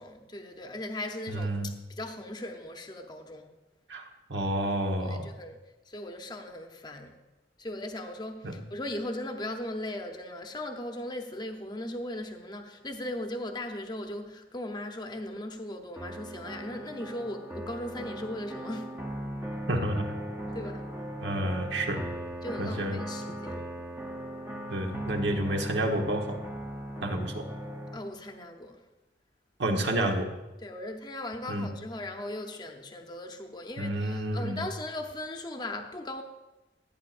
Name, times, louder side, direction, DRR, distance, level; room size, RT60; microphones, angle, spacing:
voice 1, 0.0-3.5 5.1-5.6 5.9-7.1 7.6-19.0 20.5-20.9 22.4-23.7 27.9-28.8 30.6-36.2, left 1 dB, 25° left, 0.8 m, -38 dB
voice 2, 1.3-1.7 3.9-4.0 4.3-5.3 8.4-8.6 19.7-20.1 21.2-22.1 22.6-23.0 24.7-26.4 27.0-27.5 29.6-30.3 31.5-31.7 33.8-34.6, right 1 dB, 70° right, 1.3 m, -30 dB
sound 1, 15.9-28.0, equal, 15° right, 0.8 m, -38 dB
16.0 x 9.1 x 2.5 m
head